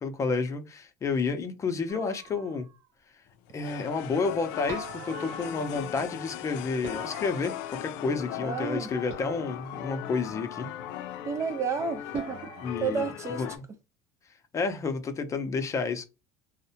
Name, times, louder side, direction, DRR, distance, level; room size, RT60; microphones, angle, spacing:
voice 1, 0.0-2.7 3.5-10.7 12.6-13.1 13.4-13.5 14.5-16.0, left 4 dB, 25° left, 0.6 m, -30 dB
sound 1, 1.9-2.8 4.7-6.1 6.8-8.1 9.1-9.9 12.1-12.7, right 3 dB, 75° right, 0.9 m, -44 dB
sound 2, 3.5-13.6, left 11 dB, 75° left, 0.4 m, -39 dB
voice 2, 8.4-8.9 11.3-12.5 12.8-13.4, right 5 dB, 25° right, 0.3 m, -31 dB
2.7 x 2.1 x 2.7 m
cardioid pair, 130°, 12 cm